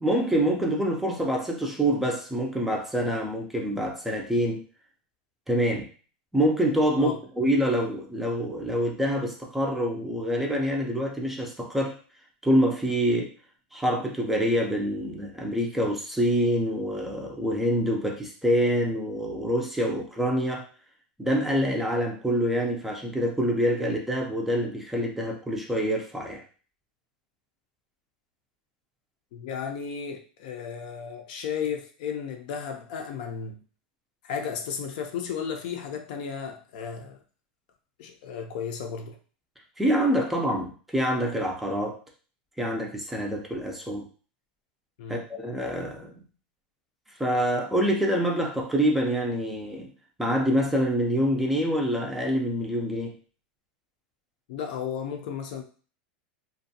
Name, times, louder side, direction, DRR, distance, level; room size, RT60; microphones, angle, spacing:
voice 1, 0.0-4.6 5.5-5.9 6.3-12.0 12.4-13.3 13.7-20.7 21.2-26.4 39.8-42.0 42.6-44.1 45.1-46.2 47.2-49.9 50.2-53.2, equal, 5° right, 0 dB, 0.4 m, -26 dB
voice 2, 29.3-33.6 34.2-37.2 38.0-39.2 45.0-45.2 54.5-55.6, left 7 dB, 65° left, 5 dB, 0.5 m, -34 dB
2.5 x 2.2 x 2.7 m, 0.39 s
supercardioid pair, 135°, 5 cm